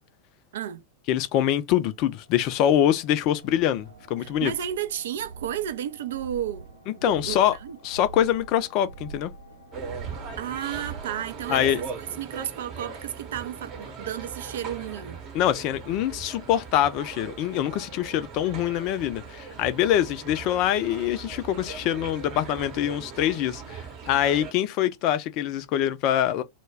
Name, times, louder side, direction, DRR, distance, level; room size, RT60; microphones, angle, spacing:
voice 1, 0.5-0.8 4.2-6.7 7.0-7.8 10.4-15.2, right 10 dB, 60° right, 0.4 m, -33 dB
voice 2, 1.1-4.5 7.0-7.5 7.8-9.3 11.5-11.8 15.3-26.4, left 11 dB, 40° left, 0.4 m, -24 dB
sound 1, 1.7-12.3, right 4 dB, 80° right, 0.9 m, -45 dB
sound 2, 9.7-24.5, right 5 dB, 35° right, 0.8 m, -39 dB
2.2 x 2.1 x 3.3 m
figure-of-eight pair, 90°, 0 cm